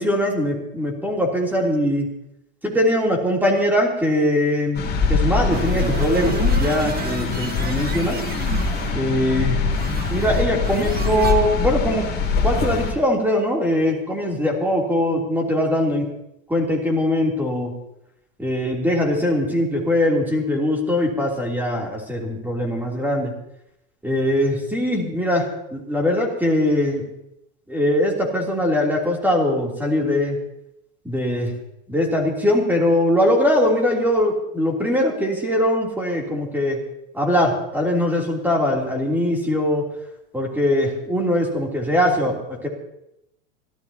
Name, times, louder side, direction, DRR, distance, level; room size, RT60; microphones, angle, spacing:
voice 1, 0.0-2.1 2.6-8.2 8.9-9.6 10.1-12.1 12.4-16.1 16.5-17.7 18.4-23.3 24.0-27.1 27.7-30.4 31.1-31.5 31.9-36.8 37.1-39.9 40.3-42.7, left 1 dB, 5° right, -1 dB, 3.3 m, -21 dB
sound 1, 4.7-12.9, left 4 dB, 25° left, 3.0 m, -23 dB
sound 2, 5.5-11.3, right 6 dB, 20° right, 1.3 m, -31 dB
27.0 x 13.5 x 2.9 m, 0.83 s
supercardioid pair, 130°, 40 cm